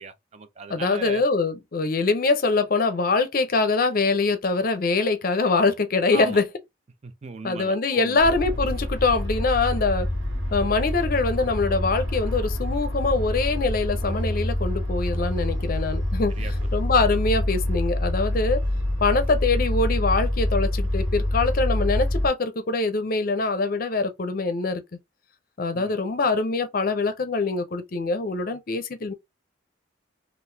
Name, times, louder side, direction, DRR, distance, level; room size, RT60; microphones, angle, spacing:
voice 1, 0.0-1.2 6.1-6.4 7.0-8.3 16.3-16.5 25.7-25.9, right 4 dB, 35° right, 0.4 m, -37 dB
voice 2, 0.7-6.4 7.4-10.1 10.5-16.3 16.7-18.6 19.0-24.8 25.6-29.1, left 3 dB, 50° left, 0.5 m, -23 dB
sound 1, 8.2-22.3, left 1 dB, 85° right, 1.3 m, -26 dB
3.8 x 2.4 x 2.6 m
head